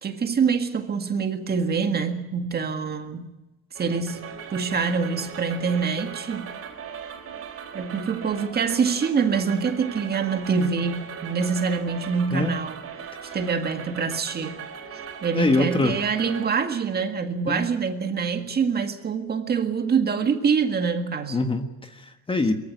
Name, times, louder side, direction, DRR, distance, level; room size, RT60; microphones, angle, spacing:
voice 1, 0.0-3.3 3.8-6.5 7.7-12.9 13.3-14.6 15.2-21.4, right 5 dB, 30° right, 1.8 m, -25 dB
sound 1, 3.7-16.6, right 7 dB, 45° right, 4.4 m, -39 dB
voice 2, 15.3-16.0 17.5-17.7 21.3-22.5, left 2 dB, 15° left, 1.5 m, -24 dB
22.0 x 15.0 x 9.6 m
cardioid pair, 115°, 33 cm